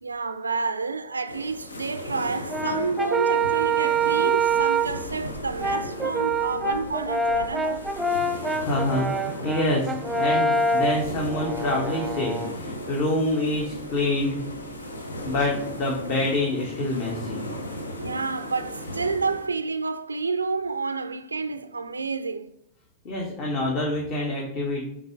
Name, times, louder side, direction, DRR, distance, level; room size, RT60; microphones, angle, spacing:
voice 1, 0.0-7.9 18.0-22.6, right 4 dB, 80° right, 0.3 m, -29 dB
sound 1, 1.3-19.5, left 1 dB, 75° left, 0.9 m, -36 dB
Brass instrument, 2.5-5.0 5.6-12.6, right 3 dB, 10° right, 0.5 m, -25 dB
voice 2, 8.6-14.4 15.2-17.4 23.0-24.9, left 1 dB, 40° left, 1.3 m, -26 dB
7.9 x 3.6 x 3.6 m
figure-of-eight pair, 90°, 0 cm